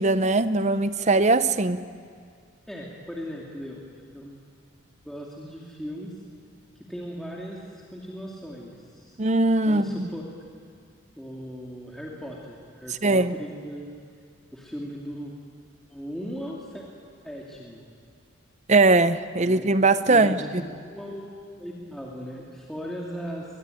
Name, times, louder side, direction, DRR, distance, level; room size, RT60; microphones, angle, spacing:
voice 1, 0.0-1.8 9.2-10.1 13.0-13.4 18.7-20.4, right 2 dB, 35° right, 13 dB, 0.7 m, -20 dB
voice 2, 2.7-3.8 4.1-4.4 5.0-6.2 6.7-9.2 9.6-10.2 11.2-13.9 14.5-15.3 15.9-16.8 17.2-17.8 19.4-19.7 20.1-21.3 21.6-23.4, equal, ahead, -4 dB, 2.4 m, -38 dB
23.0 x 22.0 x 9.2 m, 2.1 s
head